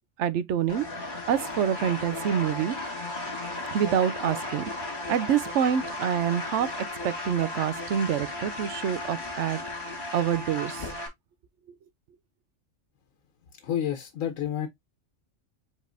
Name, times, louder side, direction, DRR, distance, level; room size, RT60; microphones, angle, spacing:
voice 1, 0.2-0.9 1.3-2.8 3.7-4.6 5.1-6.7 7.0-9.6 10.1-10.9, right 9 dB, 70° right, 0.9 m, -26 dB
sound 1, 0.7-11.1, left 2 dB, 40° left, 1.9 m, -35 dB
voice 2, 13.6-14.7, left 10 dB, 85° left, 1.2 m, -29 dB
5.0 x 4.2 x 2.5 m
omnidirectional pair, 1.3 m